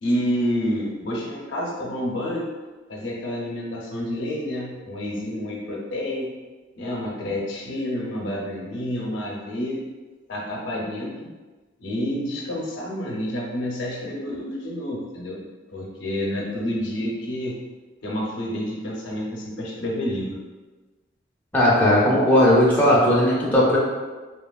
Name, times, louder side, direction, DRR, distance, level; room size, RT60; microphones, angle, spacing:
voice 1, 0.0-2.5 2.9-6.3 6.7-9.8 10.3-11.3 11.8-15.4 15.7-17.6 18.0-20.4, equal, 70° left, -3 dB, 0.6 m, -29 dB
voice 2, 21.5-23.8, left 1 dB, 10° left, -7 dB, 0.5 m, -17 dB
2.9 x 2.2 x 2.3 m, 1.3 s
head